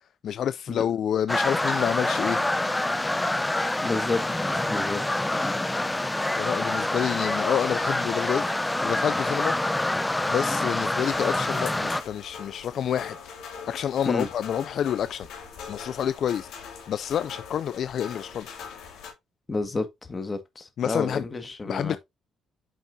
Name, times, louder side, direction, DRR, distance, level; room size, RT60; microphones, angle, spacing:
voice 1, 0.0-2.4 6.4-8.5 8.8-9.5 10.3-13.2 13.7-15.3 15.7-18.6 20.8-21.2 21.7-22.0, left 9 dB, 65° left, 0.4 m, -28 dB
sound 1, 1.3-12.0, left 1 dB, 10° left, 0.7 m, -26 dB
voice 2, 3.8-4.2 4.6-5.3 14.0-14.3 19.5-22.0, left 3 dB, 30° left, 1.8 m, -30 dB
sound 2, 11.0-19.1, left 6 dB, 80° left, 3.4 m, -41 dB
9.1 x 6.1 x 2.7 m
cardioid pair, 90°, 0 cm